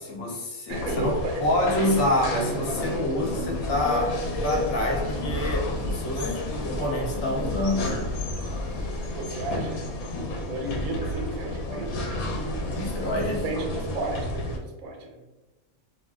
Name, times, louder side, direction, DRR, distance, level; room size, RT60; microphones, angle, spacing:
voice 1, 0.0-8.1 12.6-13.4, left 1 dB, 60° left, -1 dB, 1.0 m, -27 dB
sound 1, 0.7-14.6, left 1 dB, 90° left, 1.1 m, -31 dB
voice 2, 0.7-1.5 9.1-9.8 10.4-11.9 13.2-15.2, right 2 dB, 75° right, 1 dB, 1.1 m, -33 dB
sound 2, 3.3-9.1, left 2 dB, 55° right, 0.7 m, -35 dB
sound 3, 5.6-7.9 8.7-10.3 10.7-13.2, right 1 dB, 25° left, 0.9 m, -49 dB
2.7 x 2.1 x 3.3 m, 1.1 s
omnidirectional pair, 1.5 m